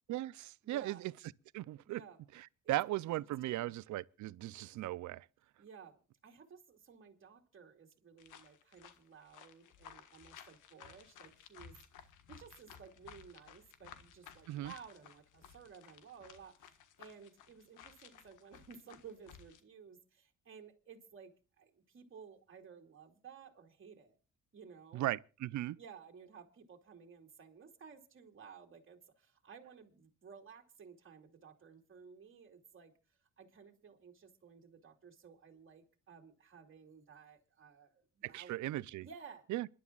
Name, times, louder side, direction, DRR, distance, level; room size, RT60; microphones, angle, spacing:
voice 1, 0.1-1.1 1.5-2.0 2.4-5.2 14.5-14.7 24.9-25.8 38.2-39.1 39.5-39.7, right 15 dB, 75° right, 0.6 m, -38 dB
voice 2, 0.6-1.0 1.8-2.2 2.6-2.8 3.4-3.7 5.6-24.2 24.5-25.0 25.8-32.9 33.4-38.6 39.0-39.5, right 6 dB, 40° right, 2.8 m, -56 dB
sound 1, 8.2-19.6, left 8 dB, 90° left, 1.6 m, -57 dB
27.5 x 11.5 x 2.4 m
cardioid pair, 90°, 30 cm